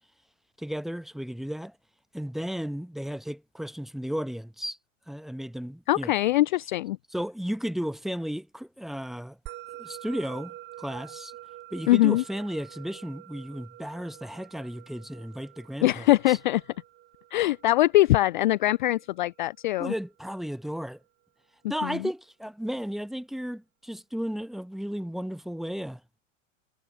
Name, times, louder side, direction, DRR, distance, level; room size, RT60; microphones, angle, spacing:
voice 1, 0.6-1.7 2.1-4.8 5.1-6.1 7.1-9.4 9.8-11.3 11.7-16.4 19.8-21.0 21.7-26.0, equal, ahead, 1.2 m, -34 dB
voice 2, 5.9-7.0 11.9-12.2 15.8-16.6 17.3-19.9 21.8-22.0, left 16 dB, 40° left, 0.4 m, -22 dB
Musical instrument, 9.5-20.1, right 14 dB, 30° right, 3.2 m, -47 dB
figure-of-eight pair, 95°, 38 cm